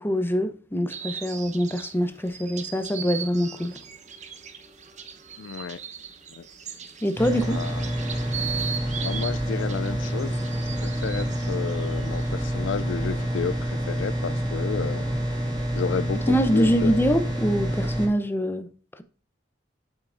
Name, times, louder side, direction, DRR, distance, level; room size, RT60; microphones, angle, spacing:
voice 1, 0.0-3.8 7.0-7.6 16.3-18.7, equal, 10° left, 0.7 m, -24 dB
sound 1, 0.9-12.4, right 7 dB, 40° right, 0.9 m, -38 dB
voice 2, 5.4-5.8 6.3-6.4 7.5-7.8 9.0-10.3 10.8-15.1 15.7-17.0, left 6 dB, 85° left, 0.4 m, -31 dB
sound 2, 7.2-18.1, right 1 dB, 25° right, 1.9 m, -28 dB
8.3 x 7.3 x 2.5 m
head